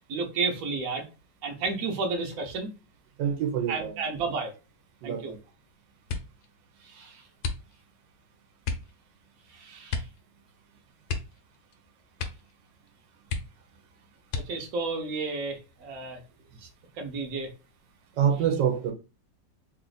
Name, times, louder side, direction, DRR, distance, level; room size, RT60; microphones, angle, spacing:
voice 1, 0.1-1.1 1.4-2.7 3.7-4.5 5.0-5.4 6.8-7.2 9.5-10.0 14.3-16.2 17.0-17.5, right 4 dB, 60° right, 1.1 m, -32 dB
voice 2, 3.2-4.0 5.0-5.4 18.2-18.9, right 8 dB, 85° right, 1.4 m, -26 dB
sound 1, 6.0-6.5 7.4-8.0 8.6-8.9 9.9-10.2 10.5-10.6 11.0-11.8 12.1-12.6 12.9-13.0 13.3-13.8 14.3-14.8 15.5-16.1 16.5-16.9, left 5 dB, 70° left, 1.2 m, -34 dB
3.3 x 2.5 x 3.9 m
omnidirectional pair, 1.9 m